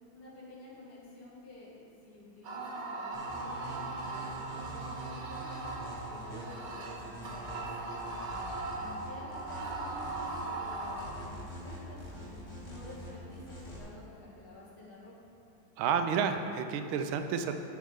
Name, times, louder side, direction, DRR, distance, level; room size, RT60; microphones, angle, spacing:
voice 1, 0.1-5.7 6.1-8.4 8.7-15.1, left 2 dB, 90° left, -7 dB, 2.8 m, -50 dB
sound 1, 2.4-11.1, right 3 dB, 60° right, 1.6 m, -39 dB
sound 2, 3.1-13.8, right 1 dB, 15° left, 1.6 m, -45 dB
voice 2, 15.8-17.6, right 6 dB, 80° right, 7 dB, 1.4 m, -30 dB
13.5 x 4.7 x 3.7 m, 2.9 s
omnidirectional pair, 2.3 m